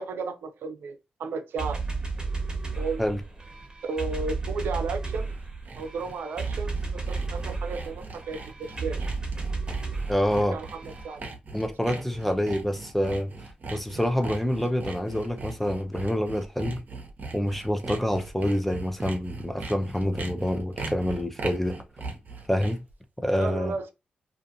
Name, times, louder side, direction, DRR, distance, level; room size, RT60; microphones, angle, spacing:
voice 1, 0.0-1.8 2.8-3.0 3.8-5.4 5.8-9.1 10.5-11.2 11.9-12.0 23.4-23.9, right 4 dB, 75° right, 0.5 m, -34 dB
sound 1, 1.6-11.1, right 4 dB, 20° right, 1.2 m, -33 dB
Sawing, 5.1-22.9, right 3 dB, 50° right, 0.8 m, -40 dB
voice 2, 10.1-10.6 11.5-13.3 13.7-16.8 17.3-21.8 22.5-22.8 23.2-23.8, equal, 5° left, 0.6 m, -27 dB
2.5 x 2.4 x 2.7 m
supercardioid pair, 40°, 4 cm